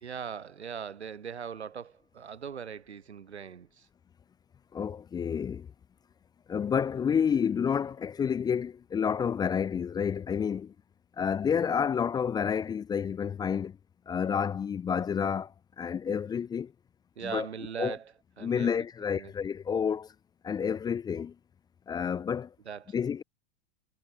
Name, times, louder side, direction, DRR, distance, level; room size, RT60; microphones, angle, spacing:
voice 1, 0.0-3.9 17.2-18.1 18.4-18.8 19.1-19.3 22.6-23.0, right 7 dB, 90° right, 1.8 m, -40 dB
voice 2, 4.7-5.7 6.5-10.7 11.2-13.8 14.1-16.7 17.2-17.5 17.8-17.9 18.4-20.1 20.4-21.3 21.9-22.5 22.9-23.2, left 7 dB, 15° left, 0.4 m, -29 dB
hypercardioid pair, 100°, 32 cm